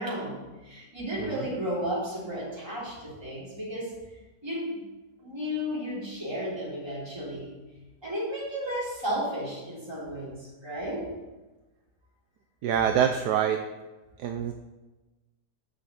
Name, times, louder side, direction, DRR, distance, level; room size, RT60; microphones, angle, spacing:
voice 1, 0.0-4.0 4.4-4.8 5.2-7.5 8.0-11.1, equal, 15° right, -7 dB, 3.5 m, -33 dB
voice 2, 12.6-13.6 14.2-14.5, right 8 dB, 70° right, 5 dB, 1.1 m, -25 dB
7.3 x 6.5 x 7.3 m, 1.1 s
omnidirectional pair, 1.9 m